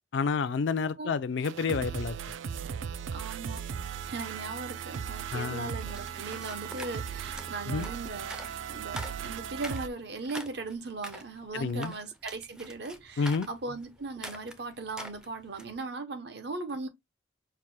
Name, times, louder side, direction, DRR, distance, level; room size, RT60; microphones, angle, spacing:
voice 1, 0.1-2.2 5.3-5.7 7.7-7.9 11.5-11.9 13.2-13.5, left 5 dB, 70° left, 0.4 m, -29 dB
sound 1, 1.4-9.9, right 7 dB, 80° right, 0.4 m, -37 dB
voice 2, 3.1-3.6 4.0-16.9, right 3 dB, 60° right, 0.7 m, -38 dB
sound 2, 5.5-15.8, equal, 5° right, 0.4 m, -46 dB
5.7 x 2.1 x 3.1 m
head